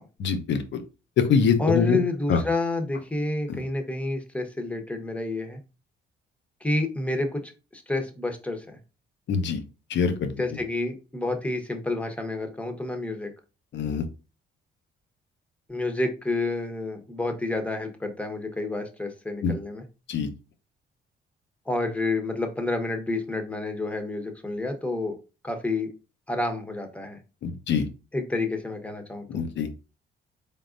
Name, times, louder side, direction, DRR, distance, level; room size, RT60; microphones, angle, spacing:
voice 1, 0.2-0.8 1.2-2.0 2.3-2.4 9.3-9.6 9.9-10.3 13.7-14.0 19.4-19.5 20.1-20.3 27.4-27.8 29.3-29.7, left 6 dB, 65° left, 8 dB, 0.8 m, -24 dB
voice 2, 1.6-5.6 6.6-8.8 10.4-13.3 15.7-19.8 21.7-25.2 25.4-25.9 26.3-27.2 28.1-29.4, left 2 dB, 5° left, 5 dB, 1.0 m, -29 dB
4.0 x 3.7 x 2.5 m, 0.31 s
cardioid pair, 90°, 20 cm